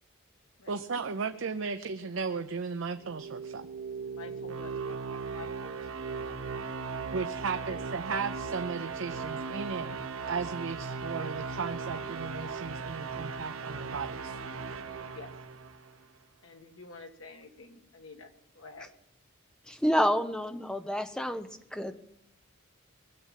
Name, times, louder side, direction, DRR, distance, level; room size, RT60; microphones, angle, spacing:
voice 1, 0.7-3.7 7.1-9.9 10.3-14.4, right 5 dB, 70° right, 8 dB, 0.6 m, -35 dB
sound 1, 2.9-16.0, right 5 dB, 90° right, 0.9 m, -38 dB
voice 2, 4.2-6.3 7.5-7.8 15.1-15.3 16.4-18.3 18.5-18.9, left 3 dB, 80° left, 4 dB, 1.6 m, -49 dB
voice 3, 19.7-22.0, equal, 5° left, 8 dB, 0.8 m, -29 dB
20.0 x 7.3 x 7.4 m, 0.77 s
head